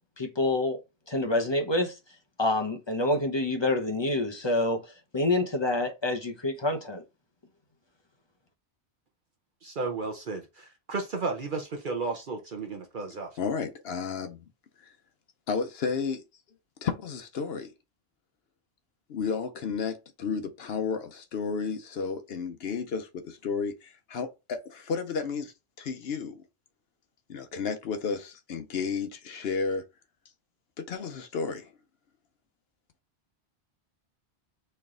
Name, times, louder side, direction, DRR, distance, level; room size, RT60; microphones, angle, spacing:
voice 1, 0.2-0.8 1.1-1.9 2.4-4.8 5.1-7.0, left 2 dB, 30° left, 0.7 m, -27 dB
voice 2, 9.6-13.4, right 3 dB, 55° right, 0.9 m, -33 dB
voice 3, 13.4-14.5 14.8-14.9 15.5-16.2 16.8-17.7 19.1-26.4 27.3-29.8 30.8-31.7, left 5 dB, 70° left, 0.9 m, -32 dB
4.3 x 3.3 x 3.7 m
omnidirectional pair, 1.1 m